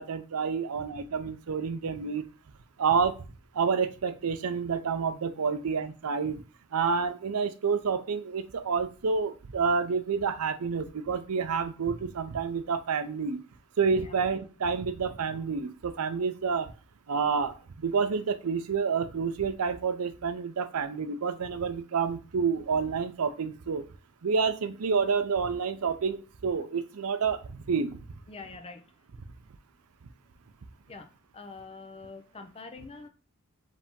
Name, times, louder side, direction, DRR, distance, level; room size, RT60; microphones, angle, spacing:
voice 1, 0.0-2.2 2.8-3.2 3.5-6.4 6.7-13.4 13.8-16.7 17.1-23.8 24.2-28.0, right 5 dB, 80° right, 11 dB, 0.5 m, -29 dB
voice 2, 28.3-28.9 30.9-31.1 31.3-33.1, left 3 dB, 25° left, 6 dB, 0.5 m, -45 dB
4.9 x 2.8 x 3.6 m, 0.35 s
head